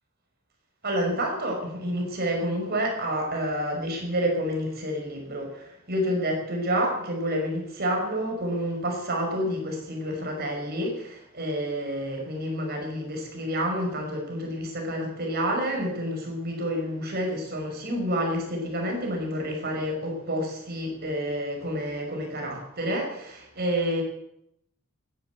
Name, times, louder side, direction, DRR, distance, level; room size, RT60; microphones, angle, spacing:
voice 1, 0.8-24.0, equal, 50° right, 1 dB, 5.5 m, -29 dB
15.0 x 11.0 x 8.1 m, 0.76 s
head